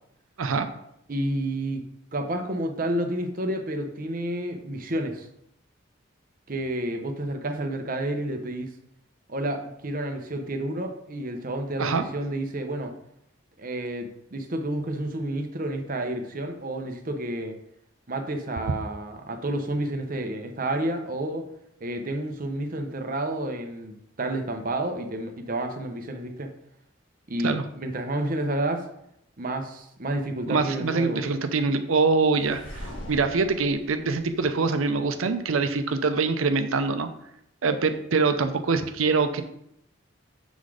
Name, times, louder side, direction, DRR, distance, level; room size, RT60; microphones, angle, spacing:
voice 1, 1.1-1.8 2.1-5.3 6.5-8.7 9.3-12.9 13.6-17.6 18.1-21.5 21.8-26.5 27.3-28.8 29.4-31.2, right 1 dB, 45° right, 5 dB, 0.8 m, -30 dB
voice 2, 30.5-37.1 37.6-39.4, right 4 dB, 90° right, 8 dB, 0.6 m, -24 dB
sound 1, 32.3-35.3, equal, 65° left, 1.7 m, -42 dB
7.1 x 4.1 x 4.9 m, 0.76 s
head